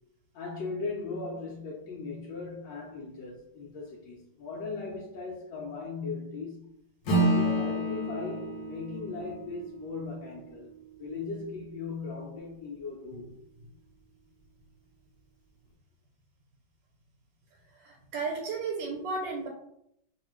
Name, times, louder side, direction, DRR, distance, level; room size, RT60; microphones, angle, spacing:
voice 1, 0.3-6.7 7.1-10.7 11.0-13.3, left 4 dB, 85° left, 1.3 m, -38 dB
Acoustic guitar / Strum, 7.1-11.8, right 1 dB, 70° left, 1.3 m, -31 dB
voice 2, 17.8-19.5, right 4 dB, 90° right, 1.4 m, -33 dB
3.3 x 2.3 x 3.1 m
omnidirectional pair, 2.0 m